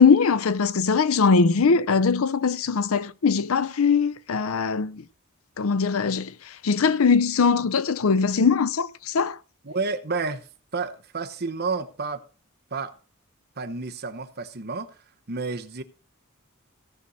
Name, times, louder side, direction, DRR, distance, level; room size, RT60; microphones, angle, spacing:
voice 1, 0.0-5.0 5.6-6.3 6.6-9.4, left 5 dB, 70° left, 0.6 m, -21 dB
voice 2, 9.6-10.5 10.7-12.2 12.7-13.0 13.6-14.9 15.3-15.8, right 4 dB, 50° right, 1.0 m, -30 dB
17.0 x 6.4 x 4.1 m
head